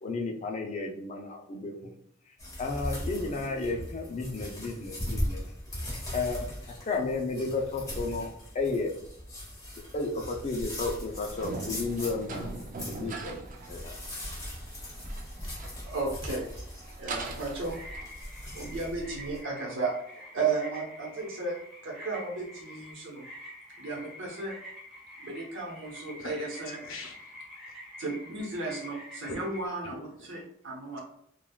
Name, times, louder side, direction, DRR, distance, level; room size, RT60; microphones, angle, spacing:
voice 1, 0.0-1.9 2.6-5.4 6.1-8.9 9.9-12.5 12.9-13.9, left 3 dB, 35° left, 2 dB, 0.4 m, -33 dB
sound 1, 2.4-19.4, equal, 20° left, 1.1 m, -39 dB
sound 2, 11.1-18.1, right 3 dB, 40° right, 0.4 m, -42 dB
voice 2, 15.8-16.5 17.0-17.8 18.5-21.6 21.8-23.2 23.8-24.6 25.2-26.8 28.0-31.0, right 3 dB, 70° right, -1 dB, 0.9 m, -34 dB
sound 3, 17.6-29.7, left 1 dB, 5° right, 0.8 m, -47 dB
voice 3, 26.1-27.3 27.7-27.8 29.3-29.4 29.8-30.3, left 3 dB, 80° left, 3 dB, 0.6 m, -43 dB
3.5 x 2.3 x 2.2 m, 0.67 s
head